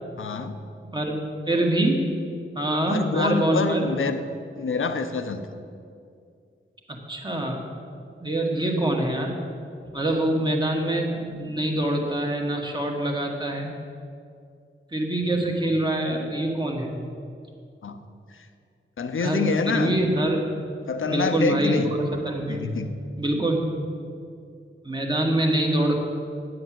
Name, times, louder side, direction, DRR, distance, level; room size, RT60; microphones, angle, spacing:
voice 1, 0.2-0.6 2.9-4.2 4.6-5.4 15.6-15.7 17.8-18.0 19.0-20.0 20.9-21.9 22.5-22.9, left 4 dB, 70° left, 8 dB, 0.8 m, -26 dB
voice 2, 1.5-2.1 2.6-3.8 7.1-7.6 8.2-9.3 9.9-13.7 14.9-17.0 19.2-20.5 21.0-22.7 23.2-23.7 24.8-25.9, right 1 dB, 20° right, 1 dB, 1.7 m, -24 dB
9.7 x 7.7 x 7.7 m, 2.4 s
wide cardioid pair, 85°, 21 cm